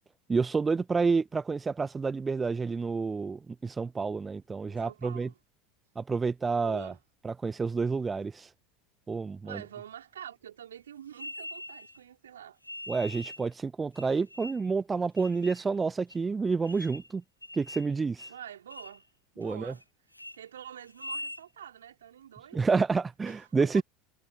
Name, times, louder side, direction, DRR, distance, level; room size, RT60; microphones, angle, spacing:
voice 1, 0.3-5.3 6.0-6.9 7.2-8.5 9.1-9.6 12.9-17.2 17.5-18.3 19.4-19.7 22.5-23.8, right 4 dB, 15° right, 1.0 m, -29 dB
voice 2, 4.7-5.4 6.6-7.0 9.4-12.6 18.3-19.1 19.3-19.8 20.3-22.6 23.2-23.8, right 10 dB, 70° right, 4.6 m, -46 dB
sound 1, 11.1-12.0 12.6-13.5 13.9-14.7 15.2-15.6 16.1-16.2 16.6-17.1 17.4-17.9 18.2-18.4 18.7-19.0 19.4-19.8 20.1-20.4 20.9-21.4, left 1 dB, 90° left, 0.7 m, -43 dB
figure-of-eight pair, 75°, 0 cm